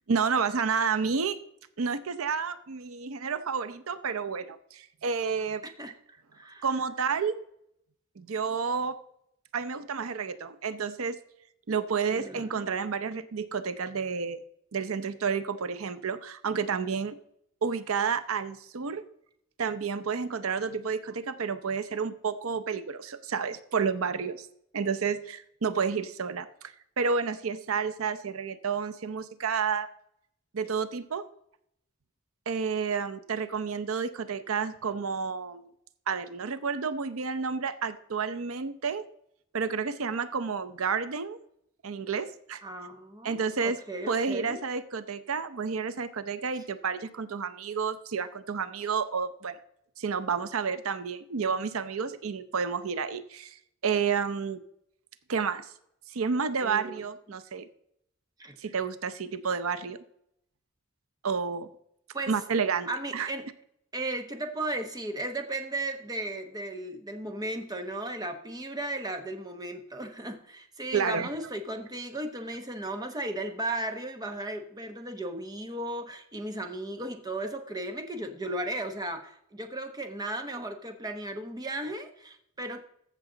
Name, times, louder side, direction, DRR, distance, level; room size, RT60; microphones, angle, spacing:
voice 1, 0.1-1.4 1.8-5.6 6.6-7.4 8.2-9.0 9.5-11.2 11.7-14.4 14.7-17.2 17.6-19.0 19.6-24.5 24.7-29.9 30.5-31.2 32.5-35.7 36.1-39.0 39.5-41.4 41.8-42.6 43.2-43.8 44.1-49.6 50.0-54.6 55.3-55.7 56.1-57.7 58.6-60.0 61.2-61.7 62.3-63.3 70.9-71.3, right 5 dB, 85° right, 12 dB, 0.6 m, -30 dB
voice 2, 5.6-5.9 6.3-6.7 12.1-12.7 42.6-44.6 56.6-57.0 58.4-58.6 62.1-62.3 62.9-63.5 63.9-82.8, right 1 dB, 20° right, 6 dB, 1.0 m, -35 dB
14.5 x 6.8 x 3.9 m, 0.73 s
head